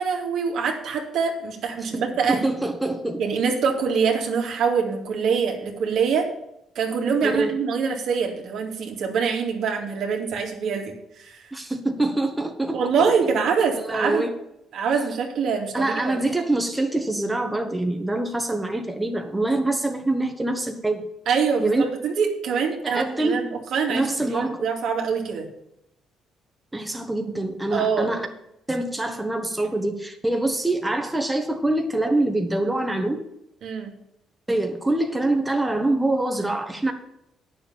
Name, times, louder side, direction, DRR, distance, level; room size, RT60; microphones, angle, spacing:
voice 1, 0.0-2.4 3.2-6.3 6.8-10.9 11.2-11.4 12.7-14.3 14.7-16.2 21.3-25.5 27.7-28.1 33.6-33.9, right 6 dB, 70° right, 1 dB, 2.3 m, -24 dB
voice 2, 2.3-3.2 7.2-7.5 11.5-12.8 13.8-14.3 15.7-21.0 21.6-21.8 22.8-23.4 23.9-24.6 26.7-28.3 28.7-33.2 34.5-36.9, right 2 dB, 10° right, 4 dB, 1.5 m, -25 dB
9.1 x 7.0 x 7.1 m, 0.82 s
supercardioid pair, 70°, 0 cm